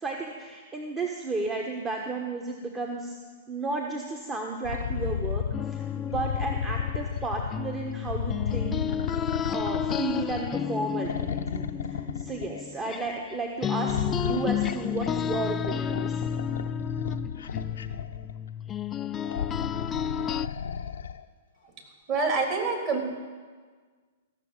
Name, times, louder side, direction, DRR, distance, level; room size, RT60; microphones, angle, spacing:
voice 1, 0.0-3.1 3.5-5.4 5.7-8.8 9.5-16.4, right 3 dB, 20° right, 1 dB, 1.3 m, -33 dB
sound 1, 4.6-5.6 6.1-7.6 8.1-10.7 11.0-12.6 13.8-18.3 19.2-21.2 22.1-22.2, left 7 dB, 80° left, 0.7 m, -33 dB
sound 2, 5.5-13.3 13.6-20.5, left 8 dB, 25° left, 0.3 m, -32 dB
voice 2, 22.1-23.0, right 4 dB, 40° right, 1 dB, 3.6 m, -26 dB
15.0 x 6.6 x 8.9 m, 1.5 s
hypercardioid pair, 120°, 0 cm